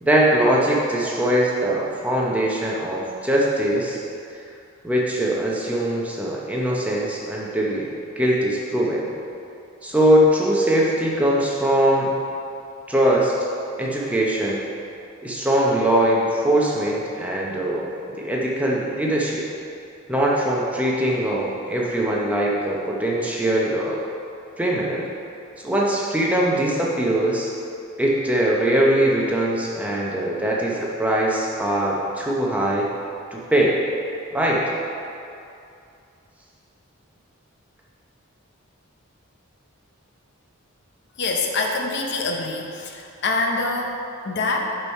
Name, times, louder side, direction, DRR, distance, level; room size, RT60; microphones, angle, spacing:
voice 1, 0.0-4.0 4.8-7.9 8.2-9.1 9.8-12.1 12.9-13.3 13.8-14.6 15.2-19.4 20.1-24.0 24.6-25.1 25.6-27.5 28.0-32.9 33.3-33.8 34.3-34.6, right 1 dB, 5° right, -4 dB, 0.7 m, -21 dB
voice 2, 41.2-44.7, left 3 dB, 50° left, 1 dB, 0.7 m, -25 dB
6.7 x 4.6 x 5.4 m, 2.6 s
head